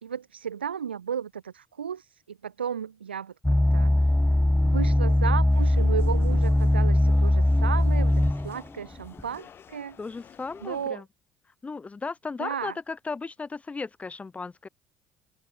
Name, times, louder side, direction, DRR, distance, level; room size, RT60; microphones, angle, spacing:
voice 1, 0.0-3.9 4.6-10.0 10.6-11.0 12.4-12.8, right 8 dB, 90° right, 1.9 m, -34 dB
sound 1, 3.4-8.6 9.2-9.3, left 1 dB, 5° left, 1.0 m, -21 dB
sound 2, 5.5-10.9, left 8 dB, 45° left, 5.2 m, -52 dB
voice 2, 10.0-11.1 11.6-14.7, left 4 dB, 25° left, 6.2 m, -36 dB
open air
hypercardioid pair, 60°, 6 cm